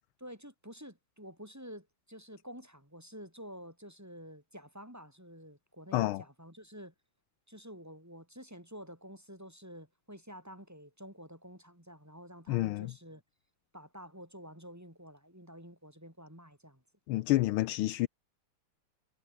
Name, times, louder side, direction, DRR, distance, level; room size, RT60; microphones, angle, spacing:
voice 1, 0.2-6.9 7.5-13.2 13.7-16.8, equal, 5° right, 5.0 m, -49 dB
voice 2, 5.9-6.2 12.5-12.9 17.1-18.1, left 17 dB, 80° left, 1.5 m, -29 dB
omnidirectional pair, 2.3 m